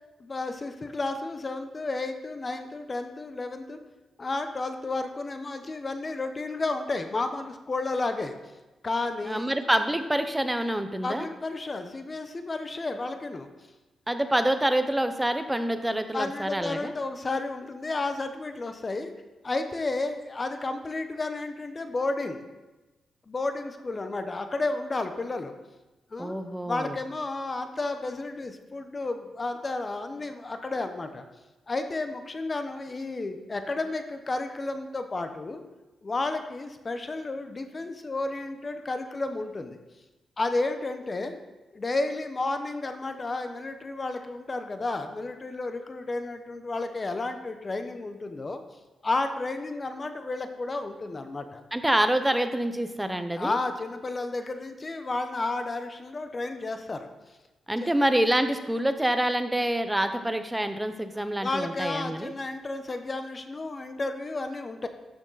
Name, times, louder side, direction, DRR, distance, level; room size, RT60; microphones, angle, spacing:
voice 1, 0.2-3.8 4.2-8.4 8.8-9.5 11.0-13.5 16.1-19.1 19.4-22.4 23.3-25.5 26.1-26.4 26.6-31.2 31.7-35.6 36.0-39.8 40.4-41.4 41.7-48.6 49.0-51.6 53.3-57.1 57.8-57.9 61.2-64.9, left 2 dB, 30° left, 7 dB, 0.8 m, -32 dB
voice 2, 9.2-11.3 14.1-16.9 26.2-26.9 51.7-53.6 57.7-62.3, right 1 dB, 10° right, 8 dB, 0.7 m, -26 dB
12.5 x 6.4 x 4.0 m, 1.1 s
cardioid pair, 115°, 0 cm